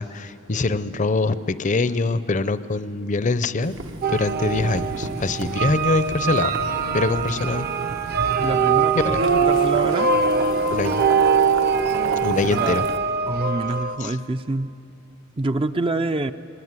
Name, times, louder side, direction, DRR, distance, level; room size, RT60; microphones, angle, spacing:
voice 1, 0.0-3.8 4.1-6.6 6.9-7.7 8.9-9.2 10.7-11.0 12.2-12.8 14.0-14.2, left 3 dB, 40° left, 15 dB, 0.6 m, -23 dB
Boiling, 3.6-13.0, right 2 dB, 70° right, 1.3 m, -34 dB
sound 1, 4.0-14.0, right 5 dB, 50° right, 0.9 m, -22 dB
voice 2, 8.4-10.1 11.9-12.9 13.3-14.7 15.4-16.3, right 2 dB, 25° right, 9 dB, 0.5 m, -26 dB
22.5 x 20.0 x 9.6 m, 2.7 s
head